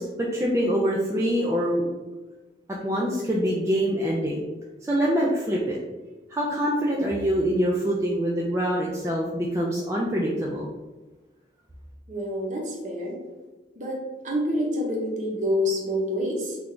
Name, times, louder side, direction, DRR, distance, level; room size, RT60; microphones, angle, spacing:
voice 1, 0.0-1.9 2.8-4.4 4.8-5.8 6.3-10.7, equal, 15° right, -3 dB, 0.3 m, -25 dB
voice 2, 12.1-13.2 13.8-16.6, left 1 dB, 40° right, -2 dB, 0.8 m, -27 dB
3.2 x 2.4 x 3.6 m, 1.2 s
head